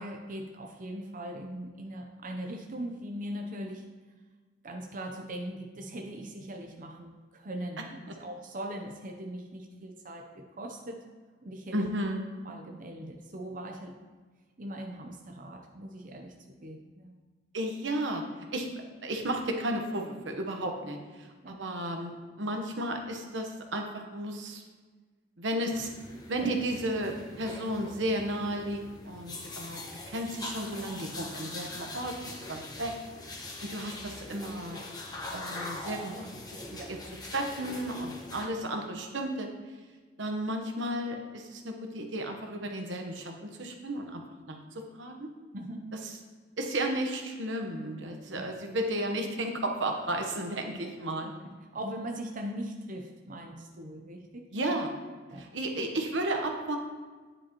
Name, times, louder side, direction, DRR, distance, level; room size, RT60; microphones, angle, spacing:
voice 1, 0.0-3.9 4.6-11.0 11.4-11.9 12.4-14.0 14.6-17.1 21.4-21.6 26.4-26.5 36.8-36.9 45.5-45.9 48.3-48.4 51.2-54.5 55.3-55.4, right 1 dB, 45° right, 2 dB, 0.7 m, -40 dB
voice 2, 11.7-12.2 17.5-18.2 18.5-24.6 25.4-25.9 26.3-28.8 29.1-29.8 30.1-32.9 33.7-34.8 35.3-37.0 37.3-39.5 40.2-44.2 44.5-45.3 46.6-51.3 54.5-54.9 55.4-56.8, right 1 dB, 80° right, 3 dB, 1.1 m, -33 dB
sound 1, 25.7-38.5, left 2 dB, 20° left, 1.2 m, -42 dB
9.8 x 8.0 x 3.0 m, 1.4 s
head